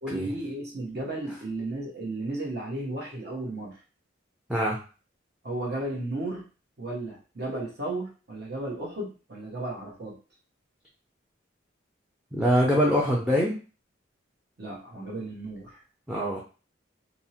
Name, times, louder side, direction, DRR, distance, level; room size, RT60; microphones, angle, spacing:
voice 1, 0.0-3.8 5.4-6.5 6.8-10.2 14.6-15.8, right 2 dB, 55° right, -2 dB, 0.9 m, -34 dB
voice 2, 12.3-13.5 16.1-16.4, equal, 5° right, -4 dB, 0.4 m, -23 dB
2.6 x 2.0 x 2.7 m, 0.35 s
head